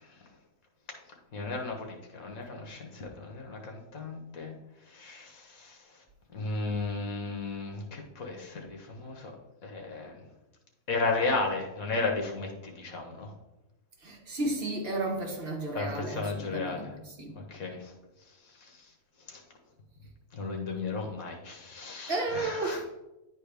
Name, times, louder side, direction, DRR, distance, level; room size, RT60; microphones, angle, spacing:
voice 1, 1.3-4.6 4.9-5.8 6.3-9.3 9.6-10.2 10.9-13.3 15.8-16.9 17.5-17.9 19.3-19.4 20.3-22.8, left 3 dB, 80° left, 2 dB, 1.7 m, -34 dB
voice 2, 14.0-17.4 22.1-23.0, right 2 dB, 45° right, 1 dB, 1.2 m, -33 dB
10.5 x 4.3 x 3.4 m, 0.96 s
omnidirectional pair, 1.5 m